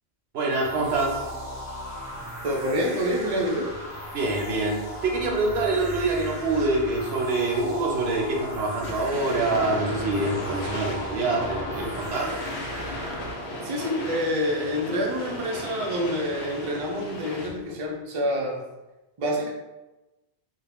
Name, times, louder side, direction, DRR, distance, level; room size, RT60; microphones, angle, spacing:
voice 1, 0.3-1.2 4.1-12.3, right 2 dB, 75° right, -1 dB, 0.8 m, -25 dB
sound 1, 0.5-13.3, equal, 25° left, 1.1 m, -37 dB
voice 2, 2.4-3.7 13.6-18.6 19.2-19.5, equal, 50° right, -2 dB, 0.4 m, -27 dB
sound 2, 8.8-17.7, left 1 dB, 80° left, 0.8 m, -35 dB
2.4 x 2.0 x 3.3 m, 1.1 s
omnidirectional pair, 1.1 m